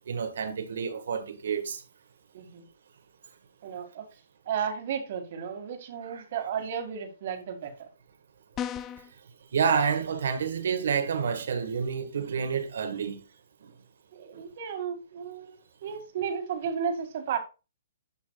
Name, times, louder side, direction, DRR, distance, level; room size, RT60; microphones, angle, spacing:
voice 1, 0.1-1.8 6.0-6.2 9.5-13.2, right 6 dB, 70° right, 1.7 m, -29 dB
voice 2, 3.6-4.1 4.5-7.9 14.1-17.4, right 7 dB, 50° right, 2.1 m, -33 dB
sound 1, 8.6-9.1, left 9 dB, 20° left, 0.5 m, -34 dB
11.5 x 5.7 x 2.4 m
hypercardioid pair, 140°, 0 cm